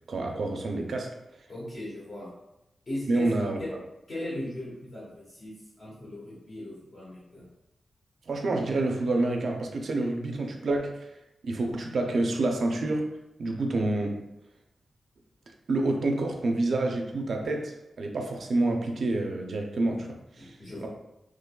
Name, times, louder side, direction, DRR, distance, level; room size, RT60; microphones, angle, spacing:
voice 1, 0.1-1.1 3.1-3.6 8.3-11.1 11.4-13.1 13.4-14.3 15.7-20.6 20.8-20.9, right 2 dB, 60° right, 2 dB, 0.5 m, -28 dB
voice 2, 1.5-2.3 2.9-3.3 3.6-3.7 4.1-7.5 20.4-20.9, left 1 dB, 45° left, -8 dB, 1.1 m, -38 dB
3.7 x 3.0 x 2.2 m, 0.89 s
wide cardioid pair, 150°, 0 cm